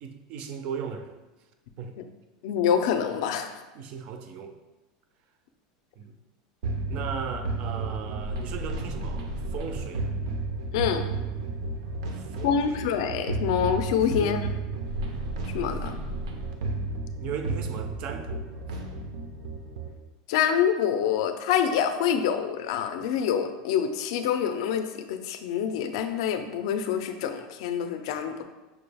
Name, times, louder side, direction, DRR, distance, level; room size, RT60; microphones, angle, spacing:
voice 1, 0.0-1.1 1.8-2.0 3.7-4.6 6.0-6.2 6.9-10.1 12.1-12.6 14.0-14.4 17.1-18.8, right 6 dB, 35° right, 6 dB, 0.3 m, -37 dB
voice 2, 2.4-3.5 10.7-11.0 12.4-14.4 15.5-15.9 20.3-28.4, left 8 dB, 60° left, 8 dB, 0.4 m, -26 dB
sound 1, 6.6-19.9, right 3 dB, 90° right, 0.6 m, -32 dB
5.7 x 2.3 x 3.3 m, 1.1 s
supercardioid pair, 180°, 3 cm